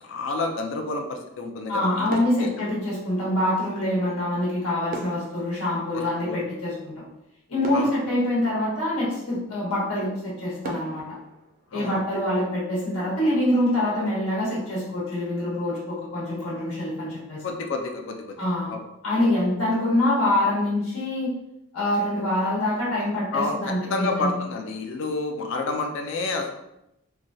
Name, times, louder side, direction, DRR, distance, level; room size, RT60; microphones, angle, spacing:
voice 1, 0.0-2.2 5.9-6.5 7.7-8.0 11.7-11.9 17.4-18.4 18.7-18.8 23.3-23.6 23.9-26.5, left 3 dB, 60° left, 4 dB, 0.4 m, -29 dB
voice 2, 1.7-7.0 7.5-11.0 11.7-17.4 18.4-18.7 19.0-21.3 21.7-24.3, left 1 dB, 80° left, -6 dB, 1.2 m, -25 dB
sound 1, 2.1-3.6 4.9-6.8 7.2-7.3 7.6-9.2 9.8-9.9 10.6-12.5 12.8-13.1, right 2 dB, 40° right, 0.4 m, -41 dB
3.2 x 2.3 x 2.6 m, 0.83 s
head